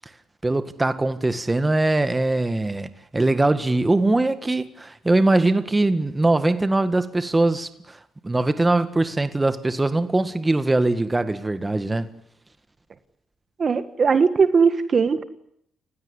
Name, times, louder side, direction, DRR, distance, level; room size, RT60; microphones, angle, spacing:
voice 1, 0.4-8.0 8.2-12.1, right 2 dB, 15° right, 1.7 m, -21 dB
voice 2, 13.6-15.2, right 5 dB, 45° right, 1.7 m, -19 dB
29.0 x 16.5 x 9.9 m
cardioid pair, 85°, 0 cm